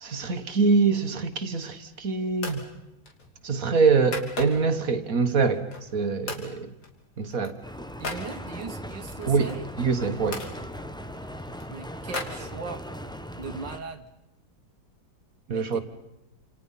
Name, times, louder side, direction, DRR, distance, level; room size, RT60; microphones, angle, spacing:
voice 1, 0.0-2.6 3.4-5.7 5.9-6.7 7.2-7.6 9.3-9.5 9.8-10.4 15.5-15.8, right 4 dB, 50° right, 1.8 m, -24 dB
sound 1, 1.4-1.9 2.4-2.7 3.1-4.8 5.3-6.0 6.3-6.5 6.8-8.3 9.1-10.5 11.1-13.0, left 3 dB, 75° left, 3.8 m, -39 dB
sound 2, 7.6-13.8, equal, 5° left, 0.5 m, -39 dB
voice 2, 8.0-9.7 11.7-12.8 13.4-14.1 15.5-15.8, right 5 dB, 70° right, 2.0 m, -38 dB
28.5 x 27.5 x 5.7 m
omnidirectional pair, 2.0 m